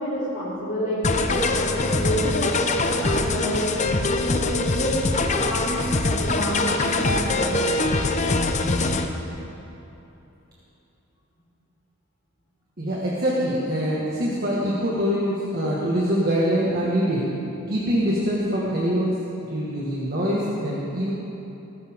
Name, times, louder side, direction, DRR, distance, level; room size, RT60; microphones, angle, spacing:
voice 1, 0.0-3.8 4.2-7.8, equal, 55° left, -11 dB, 3.0 m, -28 dB
sound 1, 1.0-9.1, left 2 dB, 35° left, 0.7 m, -23 dB
voice 2, 12.8-17.2 17.7-19.1 19.5-21.1, equal, 45° right, -6 dB, 1.8 m, -24 dB
18.0 x 15.0 x 3.7 m, 2.9 s
head